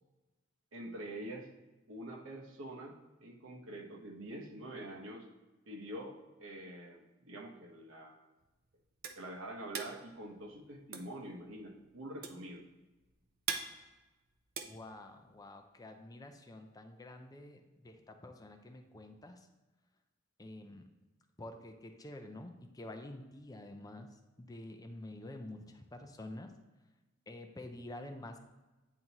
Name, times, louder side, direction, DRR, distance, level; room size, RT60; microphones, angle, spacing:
voice 1, 0.7-1.5 1.9-5.3 5.7-8.2 9.1-12.6, right 1 dB, 85° right, 2 dB, 1.1 m, -46 dB
sound 1, 8.4-15.6, right 6 dB, 50° right, 0.5 m, -43 dB
voice 2, 14.6-19.5 20.4-20.9 21.4-26.5 27.3-28.4, left 1 dB, 20° left, 5 dB, 0.5 m, -48 dB
8.8 x 4.1 x 2.9 m, 1.1 s
head